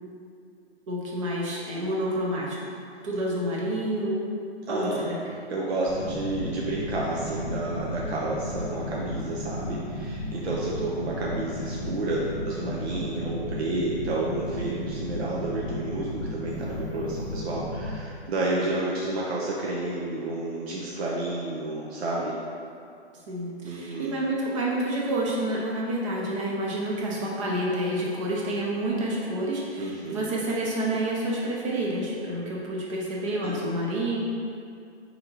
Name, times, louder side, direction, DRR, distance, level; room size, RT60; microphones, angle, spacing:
voice 1, 0.9-2.6 3.0-4.2 4.7-5.3 18.5-18.7 23.3-34.2, right 1 dB, 30° right, -4 dB, 0.7 m, -29 dB
voice 2, 4.7-5.0 5.5-22.4 23.6-24.1 29.8-30.3 33.4-33.6, right 2 dB, 70° right, -5 dB, 0.7 m, -30 dB
sound 1, 5.9-18.0, left 1 dB, 10° left, 1.0 m, -34 dB
4.0 x 2.9 x 3.9 m, 2.4 s
hypercardioid pair, 150°, 33 cm